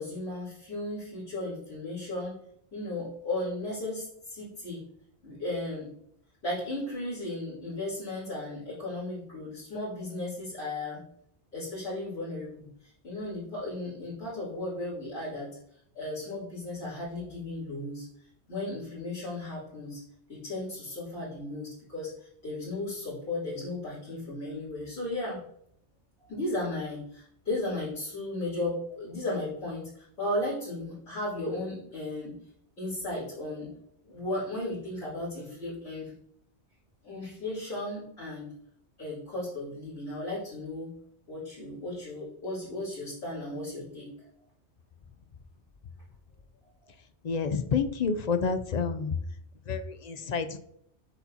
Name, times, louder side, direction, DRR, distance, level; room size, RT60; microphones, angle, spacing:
voice 1, 0.0-2.4 2.7-4.9 5.2-5.9 6.4-11.0 11.5-15.6 15.9-18.1 18.5-20.0 20.3-25.4 26.3-32.4 32.8-33.7 34.0-36.1 37.0-38.5 39.0-40.9 41.3-44.1, left 2 dB, 75° left, -11 dB, 3.8 m, -35 dB
voice 2, 47.2-49.2 49.7-50.6, left 5 dB, 50° left, 10 dB, 0.5 m, -29 dB
8.1 x 7.0 x 2.8 m, 0.69 s
omnidirectional pair, 1.1 m